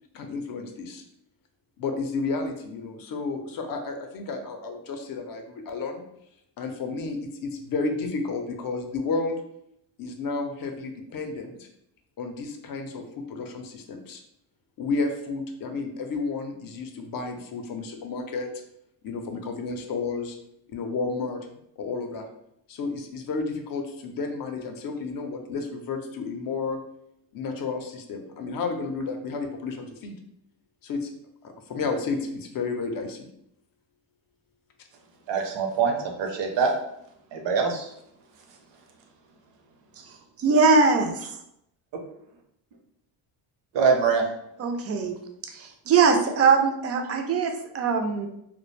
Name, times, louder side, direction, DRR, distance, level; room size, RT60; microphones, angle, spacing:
voice 1, 0.1-1.0 1.8-6.0 6.6-9.4 10.0-11.7 12.2-14.2 14.8-18.5 19.0-20.4 20.7-22.3 22.7-26.8 27.3-30.2 30.8-31.1 31.4-33.3, left 4 dB, 50° left, 0.5 m, -32 dB
voice 2, 35.3-36.7 37.3-37.9 43.7-44.2, right 5 dB, 65° right, 0.7 m, -23 dB
voice 3, 40.4-41.3 44.6-45.1 45.5-48.3, right 4 dB, 35° right, 0.4 m, -21 dB
2.3 x 2.1 x 3.1 m
cardioid pair, 95°, 46 cm